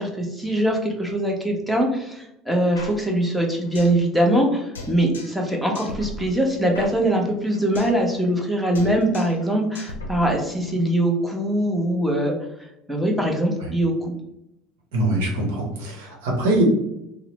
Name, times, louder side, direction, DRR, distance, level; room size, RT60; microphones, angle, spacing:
voice 1, 0.0-12.3 12.9-14.1, right 1 dB, 5° right, 0 dB, 0.8 m, -22 dB
sound 1, 2.8-4.0 4.3-4.4 4.8-5.5 5.8-8.0 8.3-8.5 8.8-9.5 9.8-10.8, left 1 dB, 90° left, 0.5 m, -38 dB
voice 2, 14.9-16.6, right 1 dB, 75° right, -1 dB, 0.9 m, -23 dB
3.0 x 2.0 x 3.0 m, 0.84 s
hypercardioid pair, 75°, 0 cm